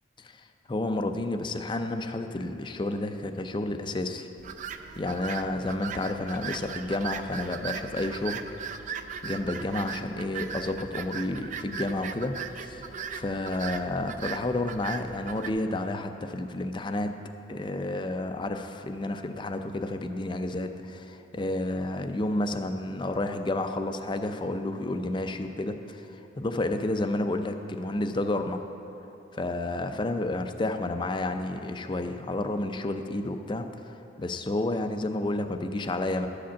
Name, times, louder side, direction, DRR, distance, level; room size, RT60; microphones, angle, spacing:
voice 1, 0.2-4.3 5.0-8.4 9.2-17.1 17.5-28.7 29.3-33.7 34.2-36.3, left 2 dB, 25° left, 7 dB, 0.4 m, -31 dB
sound 1, 4.4-15.5, right 6 dB, 45° right, 0.4 m, -38 dB
11.5 x 5.1 x 7.0 m, 3.0 s
head